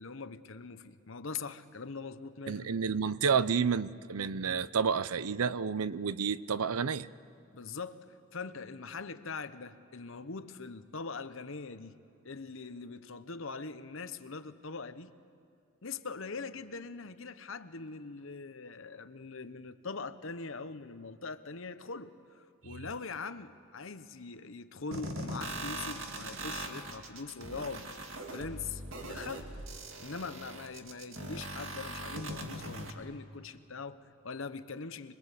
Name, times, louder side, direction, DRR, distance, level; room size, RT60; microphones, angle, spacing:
voice 1, 0.0-2.7 7.5-8.0 8.3-11.9 12.2-15.1 15.8-22.1 22.6-27.9 28.3-29.5 30.0-35.1, left 4 dB, 65° left, 1.0 m, -42 dB
voice 2, 2.5-7.1, right 6 dB, 90° right, 0.6 m, -30 dB
sound 1, 24.9-32.9, right 1 dB, 65° right, 2.2 m, -41 dB
25.5 x 22.0 x 8.4 m
head